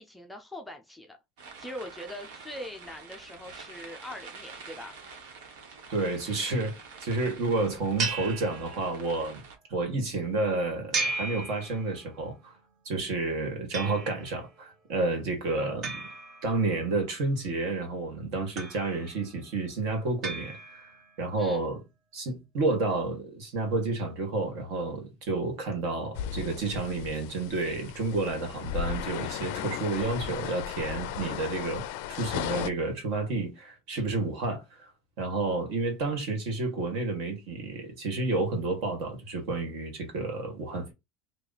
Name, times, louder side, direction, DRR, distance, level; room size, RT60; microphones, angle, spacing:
voice 1, 0.0-5.0 21.4-21.6, left 1 dB, 5° left, 0.4 m, -42 dB
sound 1, 1.4-9.6, right 5 dB, 85° right, 1.2 m, -47 dB
voice 2, 5.9-9.4 9.7-12.5 12.8-16.1 16.4-20.9 21.2-21.8 22.1-31.8 32.1-34.9 35.2-40.9, right 3 dB, 60° right, 1.6 m, -30 dB
sound 2, 8.0-9.2 10.9-12.2 13.7-14.4 15.8-17.0 18.6-19.3 20.2-21.1, right 3 dB, 35° right, 0.7 m, -35 dB
sound 3, 26.2-32.7, left 10 dB, 65° left, 0.4 m, -36 dB
3.1 x 2.3 x 4.0 m
cardioid pair, 165°, 0 cm